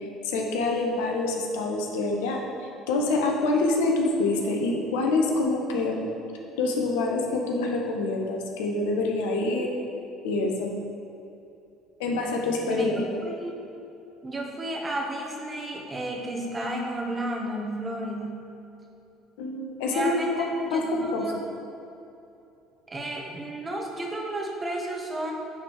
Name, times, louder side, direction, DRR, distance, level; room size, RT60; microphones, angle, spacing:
voice 1, 0.2-2.4 2.9-6.0 6.6-9.7 10.2-10.7 12.0-13.2 19.4-20.1 20.5-21.3, left 2 dB, 75° left, 0 dB, 1.0 m, -26 dB
voice 2, 12.7-13.5 14.2-18.4 19.9-21.4 22.9-25.3, right 1 dB, 25° right, 0 dB, 1.5 m, -32 dB
9.2 x 4.4 x 4.8 m, 2.8 s
hypercardioid pair, 65°, 0 cm